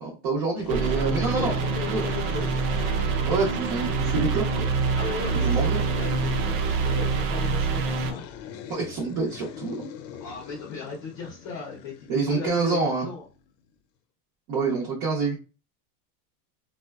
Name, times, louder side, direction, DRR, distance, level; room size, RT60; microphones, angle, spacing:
voice 1, 0.0-1.5 1.9-2.1 3.2-4.6 5.4-5.8 8.7-9.9 12.1-13.1 14.5-15.4, right 4 dB, 40° right, -3 dB, 0.6 m, -26 dB
sound 1, 0.6-13.5, left 8 dB, 85° left, 0.6 m, -41 dB
sound 2, 0.7-8.1, right 5 dB, 85° right, 0.7 m, -26 dB
voice 2, 1.3-2.6 5.0-8.3 10.2-13.3, left 5 dB, 40° left, -2 dB, 0.6 m, -36 dB
3.7 x 2.1 x 2.2 m, 0.34 s
supercardioid pair, 180°, 48 cm